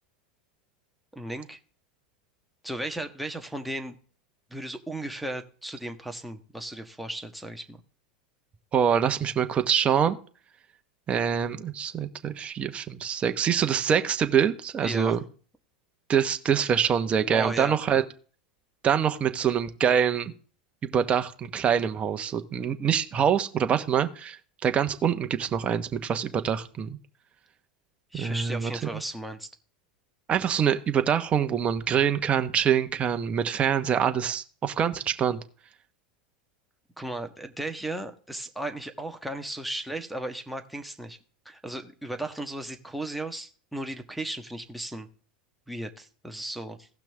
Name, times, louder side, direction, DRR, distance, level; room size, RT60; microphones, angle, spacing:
voice 1, 1.1-1.6 2.6-4.0 4.5-7.8 14.8-15.2 17.3-18.0 28.1-29.5 37.0-41.2 41.4-45.1 45.7-46.9, right 1 dB, ahead, 4 dB, 1.5 m, -35 dB
voice 2, 8.7-10.2 11.1-15.2 16.1-18.0 18.8-20.3 20.8-24.4 24.6-27.0 28.2-28.7 30.3-35.4, right 8 dB, 30° right, 8 dB, 1.2 m, -25 dB
17.0 x 5.9 x 3.5 m, 0.41 s
hypercardioid pair, 100°, 4 cm